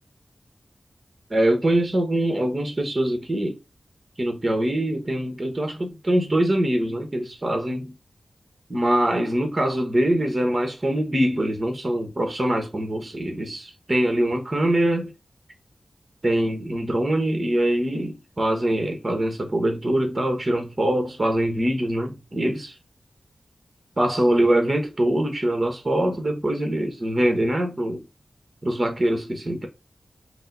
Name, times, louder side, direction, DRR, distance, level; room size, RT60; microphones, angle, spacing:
voice 1, 1.3-3.6 4.2-7.9 8.7-15.1 16.2-22.7 24.0-28.0 28.6-29.7, right 1 dB, 35° right, 1.1 m, -23 dB
5.1 x 2.0 x 3.9 m
wide cardioid pair, 75°, 0 cm